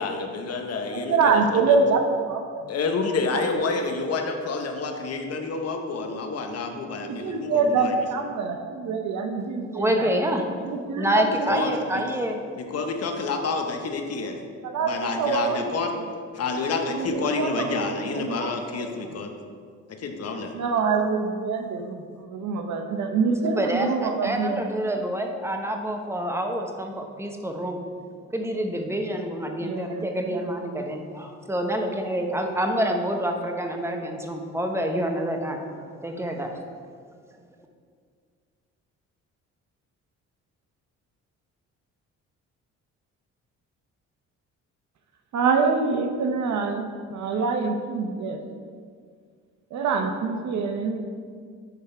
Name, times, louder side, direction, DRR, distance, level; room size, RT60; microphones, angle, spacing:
voice 1, 0.0-1.8 2.7-7.9 11.5-11.7 12.6-14.4 14.8-15.9 16.3-19.3 19.9-20.5, left 4 dB, 55° left, 4 dB, 0.9 m, -29 dB
voice 2, 0.9-2.7 3.3-3.8 7.0-10.1 10.6-11.8 14.6-16.1 16.9-18.8 20.5-24.6 29.6-30.3 45.3-48.4 49.7-51.0, right 4 dB, 65° right, 5 dB, 0.8 m, -26 dB
voice 3, 9.7-10.7 11.0-12.4 23.4-27.8 28.3-35.7 36.0-36.7, equal, 10° right, 3 dB, 0.9 m, -27 dB
10.5 x 3.6 x 4.4 m, 2.1 s
cardioid pair, 90°, 30 cm